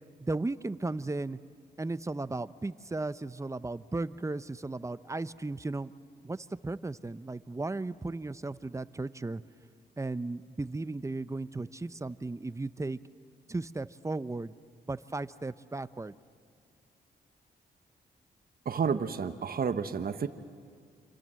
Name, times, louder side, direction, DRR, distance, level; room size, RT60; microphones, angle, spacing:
voice 1, 0.2-1.4 1.8-5.9 6.2-9.4 10.0-13.0 13.5-14.5 14.9-16.1, right 2 dB, 15° right, 15 dB, 0.7 m, -35 dB
voice 2, 18.6-20.3, right 6 dB, 55° right, 9 dB, 1.2 m, -30 dB
28.0 x 26.0 x 7.7 m, 2.2 s
cardioid pair, 75°, 18 cm